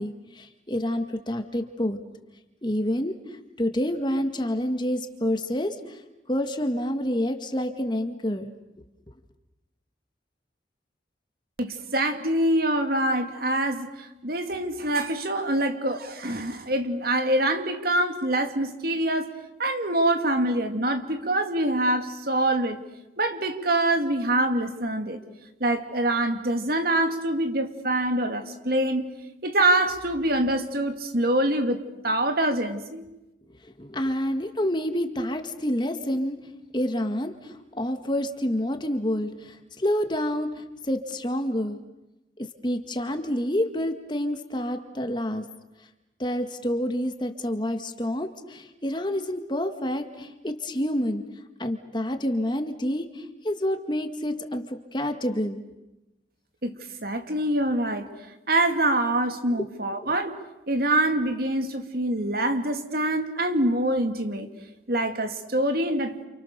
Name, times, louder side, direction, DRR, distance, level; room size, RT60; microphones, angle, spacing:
voice 1, 0.0-2.0 2.6-3.2 3.6-6.0 6.3-8.5 33.8-36.4 36.7-41.8 42.4-45.5 46.2-51.2 51.6-55.6 59.6-59.7 60.0-60.1, left 1 dB, 25° left, 7 dB, 1.9 m, -28 dB
voice 2, 11.6-19.3 19.6-22.8 23.2-25.2 25.6-29.0 29.4-33.0 56.6-58.1 58.5-60.3 60.7-64.5 64.9-66.1, right 1 dB, 55° right, 7 dB, 2.4 m, -25 dB
29.0 x 28.5 x 6.9 m, 0.98 s
head